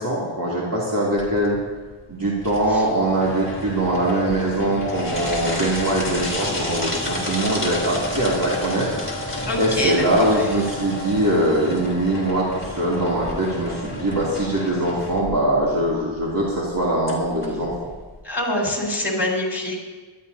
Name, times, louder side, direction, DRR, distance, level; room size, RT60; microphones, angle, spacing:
voice 1, 0.0-1.6 2.1-9.3 9.6-17.7, right 1 dB, 45° right, -6 dB, 2.9 m, -22 dB
sound 1, 1.2-18.2, left 1 dB, 25° left, 3.7 m, -31 dB
voice 2, 9.5-10.3 18.2-19.8, left 1 dB, 55° left, -2 dB, 4.5 m, -25 dB
24.0 x 12.5 x 2.8 m, 1.4 s
wide cardioid pair, 55°, 48 cm